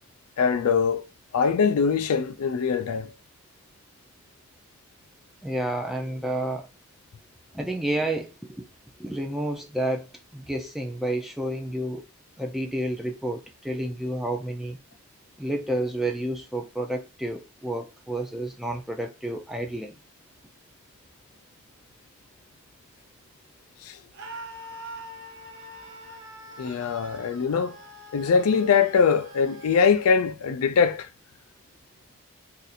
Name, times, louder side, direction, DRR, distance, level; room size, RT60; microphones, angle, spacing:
voice 1, 0.4-1.0 1.3-3.1 23.8-24.0 26.6-27.8 28.1-31.1, left 6 dB, 80° left, 0.4 m, -22 dB
voice 2, 5.4-6.6 7.5-8.7 9.0-10.1 10.3-12.0 12.4-14.8 15.4-19.9, right 1 dB, ahead, 0.3 m, -30 dB
Screaming, 24.1-30.1, right 1 dB, 55° right, 0.6 m, -44 dB
2.6 x 2.5 x 4.1 m
head